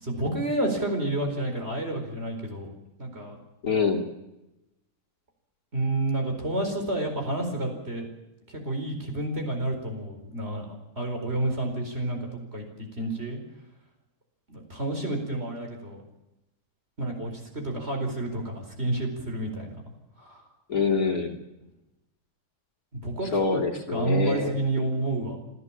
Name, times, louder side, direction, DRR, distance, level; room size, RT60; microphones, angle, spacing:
voice 1, 0.0-2.7 3.0-3.4 5.7-8.1 8.5-12.6 13.0-13.4 14.5-16.0 17.0-19.7 20.2-20.4 22.9-23.6 23.9-25.4, right 2 dB, 40° right, 3 dB, 4.8 m, -30 dB
voice 2, 3.6-4.0 20.7-21.3 23.3-24.5, left 4 dB, 65° left, 0 dB, 3.3 m, -25 dB
27.5 x 13.5 x 7.4 m, 0.97 s
omnidirectional pair, 1.7 m